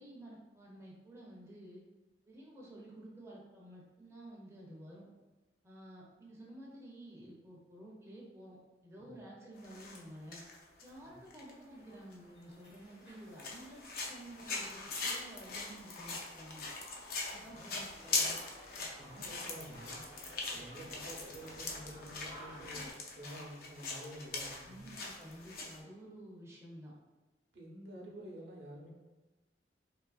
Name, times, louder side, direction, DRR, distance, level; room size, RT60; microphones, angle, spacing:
voice 1, 0.0-1.8 2.3-5.1 5.6-10.4 10.8-16.7 17.3-18.4 24.6-26.9, right 1 dB, 15° right, -5 dB, 0.4 m, -52 dB
sound 1, 9.6-10.0 10.3-11.5 12.1-12.2 12.7-12.8 13.4-25.8, left 3 dB, 55° left, 0.4 m, -41 dB
sound 2, 11.0-22.9, equal, 70° left, 1.0 m, -56 dB
voice 2, 17.4-17.7 18.7-20.0 20.5-22.9 23.1-25.0 27.5-29.0, right 1 dB, 70° right, -3 dB, 0.6 m, -50 dB
2.8 x 2.3 x 2.3 m, 1.2 s
head